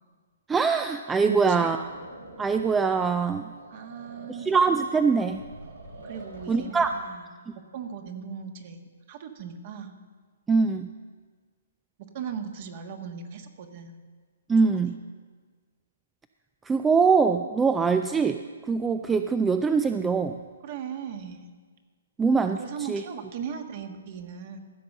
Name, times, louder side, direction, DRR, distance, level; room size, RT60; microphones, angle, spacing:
voice 1, 0.5-1.8 2.4-3.5 4.5-5.4 6.5-7.0 10.5-10.9 14.5-14.9 16.7-18.4 18.7-20.4 22.2-22.6 22.9-23.0, right 5 dB, 10° right, 8 dB, 0.3 m, -23 dB
voice 2, 1.2-1.7 3.7-4.5 6.0-8.8 9.1-10.0 12.0-14.0 14.6-14.7 20.6-21.4 22.6-24.6, right 7 dB, 45° right, 6 dB, 1.4 m, -38 dB
sound 1, 1.8-6.9, right 2 dB, 85° right, 3.1 m, -46 dB
15.0 x 5.2 x 7.2 m, 1.5 s
hypercardioid pair, 135°, 0 cm